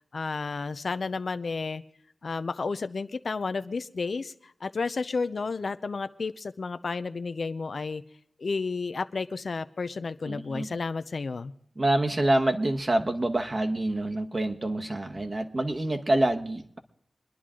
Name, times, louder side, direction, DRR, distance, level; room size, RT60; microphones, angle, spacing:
voice 1, 0.0-1.8 2.2-8.0 8.4-11.5, left 4 dB, 60° left, 12 dB, 0.6 m, -32 dB
voice 2, 10.3-10.8 11.8-16.8, right 1 dB, 35° right, 5 dB, 1.2 m, -26 dB
25.5 x 10.0 x 3.8 m, 0.69 s
cardioid pair, 60°, 0 cm